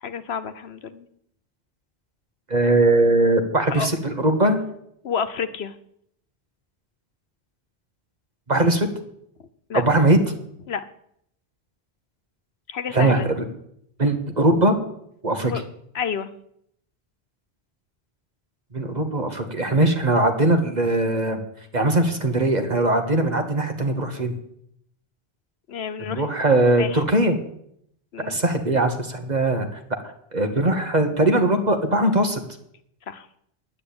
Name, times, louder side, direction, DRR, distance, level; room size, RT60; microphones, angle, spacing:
voice 1, 0.0-1.1 3.7-3.9 5.0-5.7 9.7-9.8 10.7-10.8 12.7-13.3 15.5-15.6 15.9-16.3 25.7-26.3 26.8-27.0 28.1-28.4 33.1-33.3, left 7 dB, 80° left, 11 dB, 1.2 m, -29 dB
voice 2, 2.5-4.6 8.5-8.9 9.7-10.2 12.9-13.4 14.0-14.8 15.2-15.5 18.7-21.4 21.7-24.3 26.0-27.4 28.3-29.8 30.3-32.4, right 2 dB, 45° right, 5 dB, 1.8 m, -20 dB
10.0 x 9.9 x 8.6 m, 0.72 s
omnidirectional pair, 1.0 m